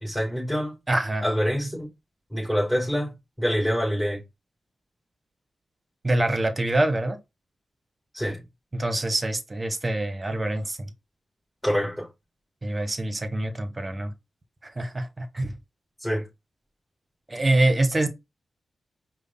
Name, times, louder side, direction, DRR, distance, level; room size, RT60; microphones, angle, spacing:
voice 1, 0.0-0.8 1.2-1.9 2.3-3.1 3.4-4.2 8.1-8.4 11.6-12.1 16.0-16.2, equal, 5° left, 2.9 m, -25 dB
voice 2, 0.9-1.2 6.0-7.2 8.7-10.9 12.6-14.1 14.6-15.5 17.3-18.1, right 1 dB, 35° right, 1.0 m, -25 dB
5.0 x 2.2 x 4.1 m
supercardioid pair, 40°, 0 cm